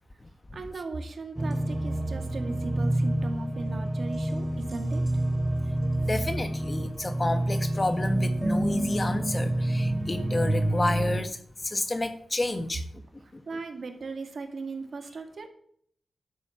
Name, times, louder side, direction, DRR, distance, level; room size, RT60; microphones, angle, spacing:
voice 1, 0.5-5.0 13.2-15.5, right 3 dB, 65° right, 2.1 m, -38 dB
sound 1, 1.4-11.2, right 1 dB, 20° right, 2.7 m, -28 dB
voice 2, 6.1-12.8 13.3-13.4, left 2 dB, 35° left, 1.4 m, -30 dB
11.5 x 6.9 x 7.0 m
cardioid pair, 65°, 0 cm